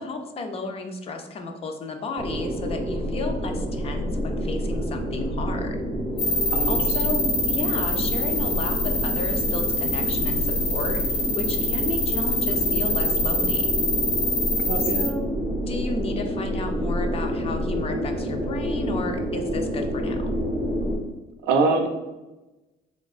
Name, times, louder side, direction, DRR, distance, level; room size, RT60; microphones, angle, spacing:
voice 1, 0.0-5.8 6.3-6.4 6.7-13.8 14.9-15.3 15.7-20.3, left 3 dB, 35° left, 5 dB, 0.4 m, -33 dB
sound 1, 2.2-21.0, equal, 35° right, 0.7 m, -28 dB
sound 2, 6.2-15.1, left 2 dB, 85° left, 0.7 m, -25 dB
voice 2, 14.7-15.1 21.4-21.9, right 3 dB, 80° right, 5 dB, 0.5 m, -23 dB
3.2 x 2.7 x 2.4 m, 1.1 s
cardioid pair, 110°, 17 cm